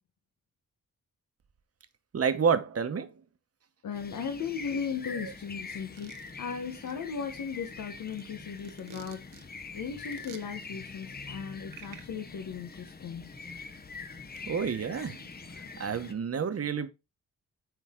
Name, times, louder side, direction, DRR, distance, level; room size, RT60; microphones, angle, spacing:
voice 1, 2.1-3.1 5.1-5.3 14.5-15.2 15.8-16.9, right 6 dB, 50° right, 1.1 m, -29 dB
voice 2, 3.8-9.4 9.7-13.3, left 6 dB, 85° left, 1.1 m, -37 dB
sound 1, 3.9-16.1, left 4 dB, 30° left, 0.9 m, -44 dB
sound 2, 6.0-6.5 6.9-7.0 7.4-9.4 10.1-10.4 11.7-12.1, right 8 dB, 85° right, 1.1 m, -49 dB
9.4 x 3.8 x 3.7 m
cardioid pair, 90°, 31 cm